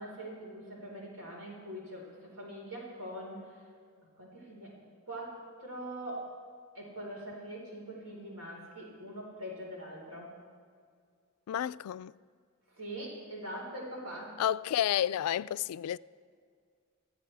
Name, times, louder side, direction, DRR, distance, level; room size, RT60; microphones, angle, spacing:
voice 1, 0.0-3.7 4.1-4.8 5.1-6.3 6.7-10.3 12.7-14.4, right 1 dB, 80° right, 4.4 m, -43 dB
voice 2, 11.5-12.1 14.4-16.0, left 10 dB, 80° left, 0.3 m, -30 dB
23.5 x 15.0 x 3.4 m
head